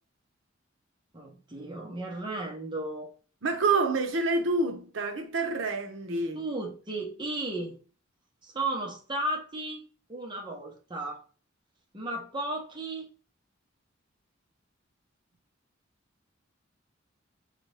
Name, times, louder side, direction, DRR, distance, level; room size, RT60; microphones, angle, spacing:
voice 1, 1.1-3.1 6.3-7.8 8.4-11.2 11.9-13.1, right 2 dB, 25° right, 0.8 m, -34 dB
voice 2, 3.4-6.4, right 3 dB, 75° right, 0.7 m, -27 dB
4.1 x 2.8 x 3.3 m
head